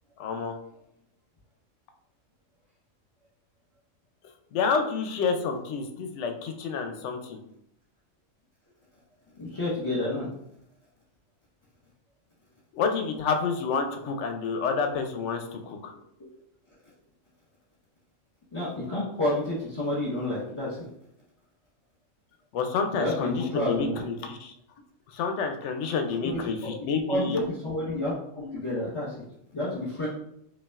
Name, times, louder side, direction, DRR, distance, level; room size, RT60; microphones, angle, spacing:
voice 1, 0.2-0.5 4.5-7.4 12.7-15.9 22.5-24.5 25.1-27.4, left 5 dB, 65° left, 5 dB, 0.8 m, -29 dB
voice 2, 9.4-10.3 18.5-20.8 23.0-24.1 26.2-29.1 29.5-30.1, left 1 dB, 25° left, -8 dB, 0.9 m, -30 dB
5.2 x 2.5 x 2.3 m, 0.75 s
omnidirectional pair, 1.4 m